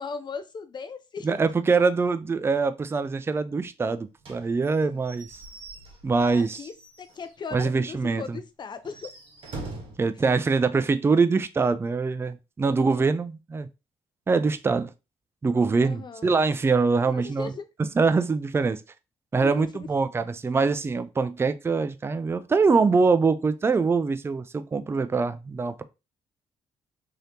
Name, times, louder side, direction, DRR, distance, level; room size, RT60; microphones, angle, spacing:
voice 1, 0.0-1.4 4.9-5.0 6.2-9.1 12.6-13.1 15.8-16.4 17.1-17.7 19.4-19.9, left 5 dB, 40° left, 0.6 m, -38 dB
voice 2, 1.2-5.3 6.0-6.6 7.5-8.4 10.0-13.7 14.3-14.9 15.4-17.5 18.0-18.8 19.3-25.8, right 4 dB, 20° right, 0.4 m, -24 dB
Slam / Squeak / Wood, 4.2-7.4 7.8-7.9 8.2-8.3 8.8-10.1, right 2 dB, 55° right, 1.1 m, -43 dB
3.2 x 2.8 x 2.7 m
supercardioid pair, 60°, 11 cm